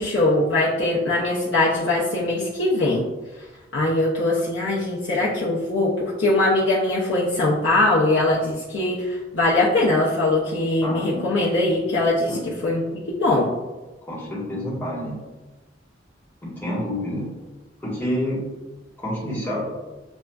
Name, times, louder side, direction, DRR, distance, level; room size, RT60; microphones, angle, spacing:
voice 1, 0.0-3.0 3.7-13.5, left 2 dB, 80° left, -5 dB, 0.6 m, -21 dB
voice 2, 10.8-11.2 12.3-12.5 14.0-15.2 16.4-17.3 17.8-18.5 19.0-19.6, equal, 10° left, -7 dB, 1.2 m, -28 dB
6.1 x 2.4 x 2.2 m, 1.2 s
head